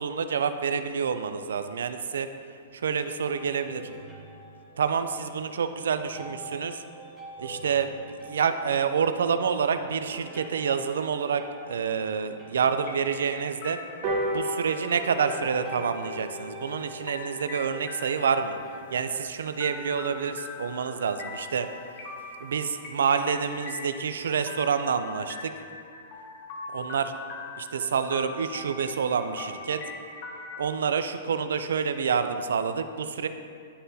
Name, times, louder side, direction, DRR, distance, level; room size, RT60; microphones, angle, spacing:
voice 1, 0.0-2.3 2.7-3.9 4.8-6.8 7.4-13.8 14.3-18.6 18.9-21.7 22.4-25.5 26.7-27.1 27.6-29.8 30.6-33.3, right 6 dB, 85° right, 9 dB, 0.4 m, -28 dB
sound 1, 3.2-13.5 14.2-21.1 21.7-21.8 22.5-22.6, right 1 dB, 5° right, 1.1 m, -48 dB
sound 2, 12.8-30.6, left 3 dB, 40° left, 0.9 m, -42 dB
sound 3, 14.0-20.8 21.2-21.3 21.6-21.7 22.0-22.1 22.4-22.5 22.8-23.1 23.5-23.6, right 1 dB, 35° right, 1.1 m, -37 dB
11.0 x 3.8 x 2.7 m, 2.3 s
hypercardioid pair, 150°, 0 cm